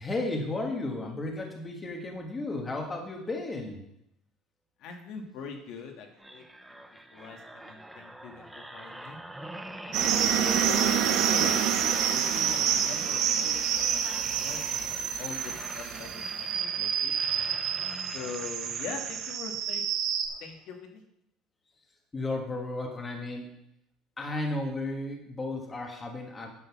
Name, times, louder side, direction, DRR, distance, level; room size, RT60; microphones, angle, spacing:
voice 1, 0.0-3.8 22.1-23.5 24.2-26.5, left 2 dB, 15° left, 2 dB, 1.4 m, -34 dB
voice 2, 4.8-6.4 6.7-6.8 7.1-9.2 9.8-11.8 12.1-17.1 18.0-19.8 20.4-21.0, left 5 dB, 55° left, 3 dB, 1.5 m, -42 dB
sound 1, 6.2-19.7 20.3-20.5, right 1 dB, 5° right, 0.7 m, -44 dB
sound 2, 9.9-20.3, right 8 dB, 60° right, 1.1 m, -28 dB
9.7 x 6.5 x 5.9 m, 0.77 s
cardioid pair, 160°, 0 cm